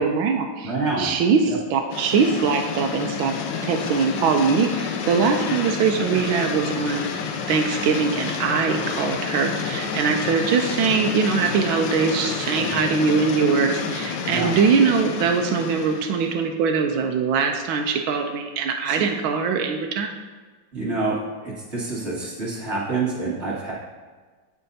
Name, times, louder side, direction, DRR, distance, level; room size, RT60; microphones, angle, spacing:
voice 1, 0.0-3.3 3.6-20.1, right 5 dB, 85° right, 4 dB, 1.5 m, -22 dB
voice 2, 0.6-1.1 1.5-1.6 6.1-6.2 12.6-12.8 14.3-14.5 18.9-19.0 20.7-23.7, right 3 dB, 35° right, -6 dB, 2.4 m, -27 dB
sound 1, 1.9-16.4, left 6 dB, 75° left, 1.3 m, -29 dB
15.0 x 5.5 x 2.8 m, 1.4 s
omnidirectional pair, 2.1 m